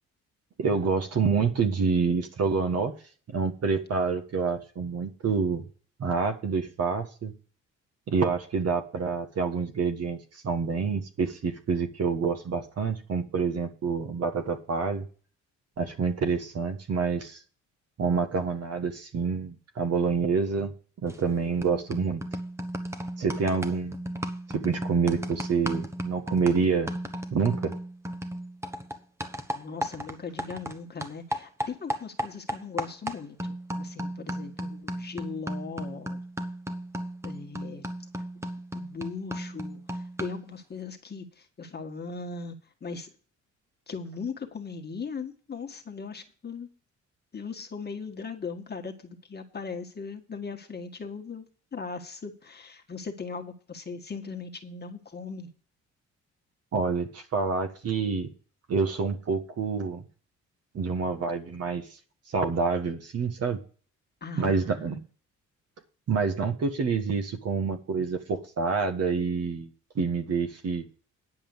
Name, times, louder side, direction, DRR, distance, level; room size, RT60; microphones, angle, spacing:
voice 1, 0.6-2.9 3.3-5.6 6.0-7.3 8.1-15.1 15.8-17.4 18.0-20.7 21.0-22.2 23.2-24.0 24.5-26.9 27.3-27.7 56.7-58.3 58.7-60.0 60.7-61.9 62.3-63.6 64.4-65.0 66.1-69.7 69.9-70.8, right 5 dB, 55° right, 7 dB, 1.6 m, -27 dB
sound 1, 21.1-21.3 21.6-30.8 31.0-40.5, right 1 dB, 10° right, 1.1 m, -35 dB
voice 2, 29.5-36.2 37.2-37.8 38.7-43.1 43.9-46.7 47.3-51.4 51.7-55.5 64.2-65.0, left 5 dB, 35° left, 5 dB, 1.6 m, -39 dB
9.9 x 5.4 x 8.0 m, 0.40 s
cardioid pair, 90°, 30 cm